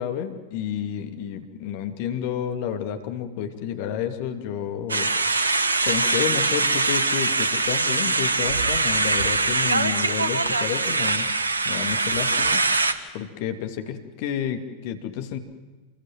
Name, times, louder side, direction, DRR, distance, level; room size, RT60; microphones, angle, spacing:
voice 1, 0.0-5.1 5.8-11.3 11.6-12.6 13.1-15.4, left 9 dB, 50° left, 6 dB, 2.6 m, -30 dB
sound 1, 4.9-12.9, right 3 dB, 75° right, 1.4 m, -23 dB
28.5 x 21.5 x 7.7 m, 1.3 s
figure-of-eight pair, 90°, 0 cm